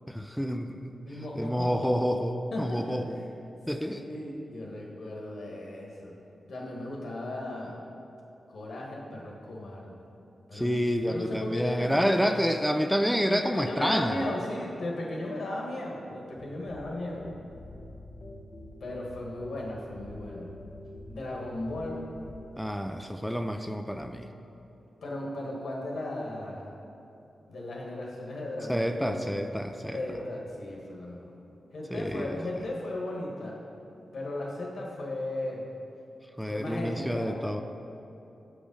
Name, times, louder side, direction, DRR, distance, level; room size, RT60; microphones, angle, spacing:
voice 1, 0.1-0.9 1.4-3.2 3.7-4.0 10.5-14.3 22.6-24.3 28.7-30.0 31.9-32.4 36.4-37.6, equal, ahead, 5 dB, 0.3 m, -28 dB
voice 2, 1.0-2.0 2.5-3.0 3.8-6.2 6.4-7.8 8.5-10.0 10.5-10.8 11.0-12.2 13.3-17.3 18.8-20.5 21.1-22.0 25.0-26.7 27.5-29.4 29.9-31.3 31.7-33.6 34.1-35.7 36.4-37.3, left 1 dB, 80° left, -2 dB, 1.4 m, -36 dB
sound 1, 16.3-22.7, left 1 dB, 60° left, 0.9 m, -46 dB
7.3 x 5.1 x 5.3 m, 3.0 s
cardioid pair, 90°, 0 cm